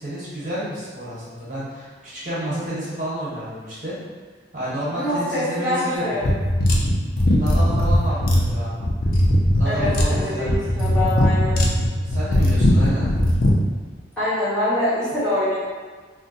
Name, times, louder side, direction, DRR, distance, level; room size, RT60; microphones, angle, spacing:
voice 1, 0.0-4.0 4.5-6.1 7.3-8.8 9.5-10.7 11.9-13.1, equal, 45° right, -9 dB, 1.1 m, -30 dB
voice 2, 4.9-6.2 9.6-11.6 14.2-15.6, left 1 dB, 5° left, -13 dB, 1.0 m, -24 dB
sound 1, 6.2-13.6, left 1 dB, 50° left, 0.5 m, -19 dB
2.6 x 2.1 x 4.0 m, 1.5 s
head